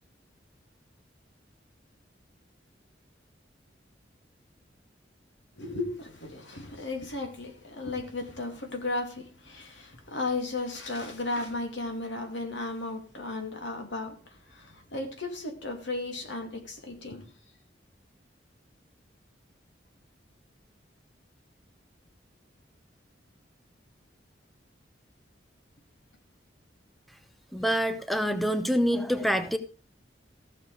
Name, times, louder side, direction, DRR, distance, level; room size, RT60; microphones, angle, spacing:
voice 1, 5.6-17.2, left 2 dB, 85° left, 5 dB, 2.5 m, -35 dB
voice 2, 27.5-29.6, equal, ahead, 9 dB, 0.8 m, -26 dB
15.0 x 6.8 x 4.8 m, 0.38 s
head